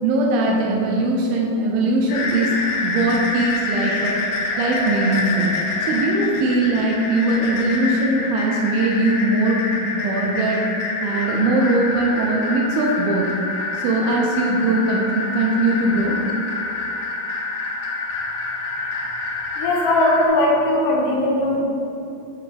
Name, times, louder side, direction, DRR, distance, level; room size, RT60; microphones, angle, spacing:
voice 1, 0.0-2.6 2.8-4.1 4.6-5.5 5.8-10.6 11.0-13.3 13.7-16.2, right 2 dB, 80° right, -1 dB, 2.2 m, -20 dB
sound 1, 2.1-20.3, left 3 dB, 75° left, 2.6 m, -27 dB
voice 2, 19.6-21.6, left 1 dB, 90° left, -3 dB, 3.3 m, -19 dB
7.5 x 5.4 x 3.4 m, 2.7 s
omnidirectional pair, 4.8 m